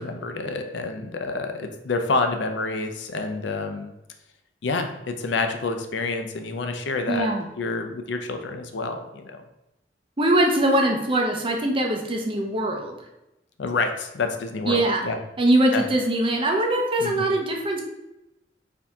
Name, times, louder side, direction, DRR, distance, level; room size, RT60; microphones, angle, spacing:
voice 1, 0.0-3.9 4.6-7.3 7.6-9.4 13.6-15.2 15.7-15.8 17.0-17.3, left 3 dB, 85° left, 6 dB, 0.5 m, -28 dB
voice 2, 7.1-7.5 10.2-12.9 14.6-15.1 15.4-17.8, right 1 dB, 30° right, 1 dB, 0.7 m, -22 dB
4.4 x 2.8 x 3.5 m, 0.91 s
head